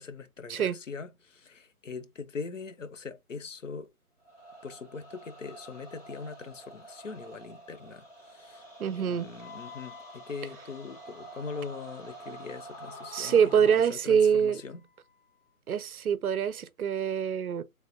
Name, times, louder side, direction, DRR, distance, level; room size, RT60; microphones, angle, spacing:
voice 1, 0.0-3.9 4.6-8.1 8.3-8.6 8.9-14.8, left 5 dB, 55° left, 0.6 m, -41 dB
sound 1, 4.2-13.8, right 1 dB, 40° left, 2.0 m, -48 dB
voice 2, 8.8-9.3 13.1-14.6 15.7-17.6, right 7 dB, 70° right, 0.6 m, -25 dB
Wind instrument woodwind instrument, 9.4-15.5, left 11 dB, 25° right, 0.6 m, -55 dB
3.8 x 3.4 x 2.6 m
hypercardioid pair, 170°, 45 cm